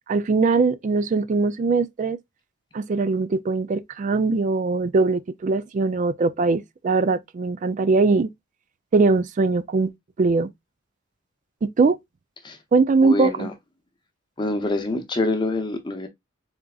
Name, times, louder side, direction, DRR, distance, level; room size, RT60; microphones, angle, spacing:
voice 1, 0.1-2.2 2.7-8.3 8.9-9.9 10.2-10.5 11.6-12.0 12.7-13.5, right 3 dB, 35° right, 0.3 m, -21 dB
voice 2, 13.0-13.5 14.4-16.1, left 2 dB, 20° left, 0.7 m, -26 dB
3.9 x 3.5 x 2.3 m
head